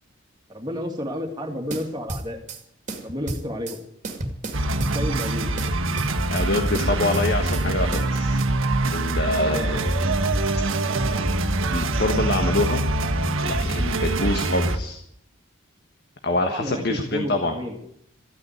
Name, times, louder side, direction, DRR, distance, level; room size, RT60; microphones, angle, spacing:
voice 1, 0.5-2.4 3.0-3.8 4.9-5.6 9.4-9.6 16.4-16.8 17.1-17.8, left 1 dB, 20° right, 2 dB, 2.3 m, -31 dB
sound 1, 1.7-2.6 2.9-3.8 4.0-5.3 5.6-6.5 6.7-7.7 7.9-8.1, right 2 dB, 35° right, 2.3 m, -32 dB
sound 2, 4.5-14.8, right 2 dB, 75° right, 1.5 m, -24 dB
voice 2, 6.3-8.4 8.9-10.0 11.7-12.8 13.4-15.0 16.2-17.5, left 2 dB, 50° left, 5 dB, 1.4 m, -25 dB
14.0 x 9.6 x 9.5 m, 0.70 s
head